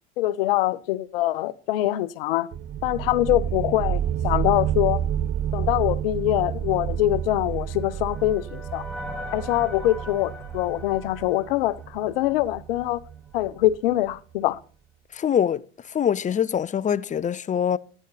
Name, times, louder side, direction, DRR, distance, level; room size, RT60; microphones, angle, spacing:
voice 1, 0.2-2.5 2.8-5.0 5.5-8.8 9.3-13.0 13.3-14.6, left 15 dB, 75° left, 0.8 m, -24 dB
sound 1, 2.5-13.9, right 10 dB, 35° right, 0.7 m, -30 dB
sound 2, 7.2-12.6, left 1 dB, 5° left, 2.7 m, -41 dB
voice 2, 15.1-15.6 15.9-17.8, left 8 dB, 25° left, 0.7 m, -24 dB
14.0 x 10.0 x 4.0 m
hypercardioid pair, 80°, 29 cm